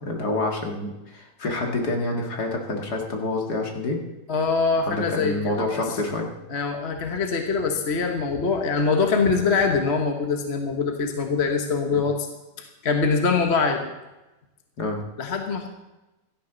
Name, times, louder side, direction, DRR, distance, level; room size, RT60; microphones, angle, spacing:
voice 1, 0.0-4.0 4.9-6.3 11.9-12.0 14.8-15.0, left 2 dB, 60° left, 1 dB, 2.5 m, -27 dB
voice 2, 4.3-5.8 6.5-12.3 12.6-13.9 15.2-15.7, left 4 dB, 40° left, 4 dB, 1.3 m, -23 dB
16.5 x 13.0 x 4.0 m, 1.0 s
omnidirectional pair, 2.0 m